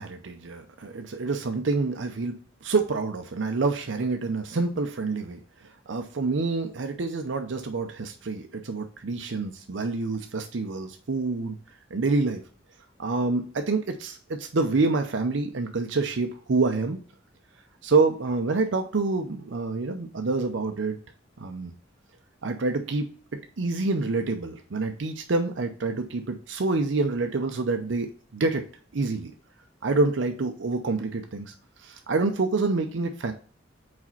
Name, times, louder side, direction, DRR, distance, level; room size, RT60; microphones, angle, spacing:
voice 1, 0.0-5.4 5.9-11.6 11.9-12.4 13.0-17.0 17.8-21.0 21.4-21.7 22.4-23.1 23.6-28.6 28.9-29.3 29.8-31.5 31.8-33.3, right 3 dB, 75° right, 5 dB, 0.6 m, -27 dB
4.9 x 4.2 x 5.6 m, 0.43 s
head